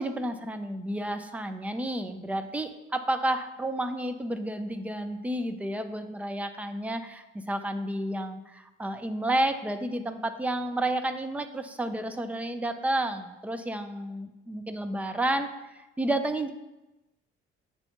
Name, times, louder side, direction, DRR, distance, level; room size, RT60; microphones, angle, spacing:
voice 1, 0.0-15.5 16.0-16.5, right 1 dB, 5° right, 7 dB, 0.3 m, -31 dB
6.9 x 2.8 x 5.2 m, 1.0 s
figure-of-eight pair, 45°, 35 cm